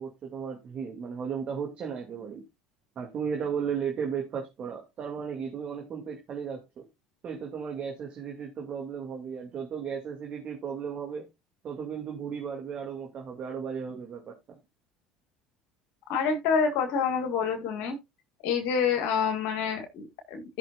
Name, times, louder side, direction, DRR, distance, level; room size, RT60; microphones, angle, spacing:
voice 1, 0.0-2.4 3.0-6.9 7.2-11.3 11.6-14.4, right 7 dB, 45° right, 2.4 m, -35 dB
voice 2, 16.1-18.0 18.4-20.6, left 6 dB, 65° left, 1.8 m, -27 dB
15.5 x 5.9 x 2.4 m
hypercardioid pair, 70°, 3 cm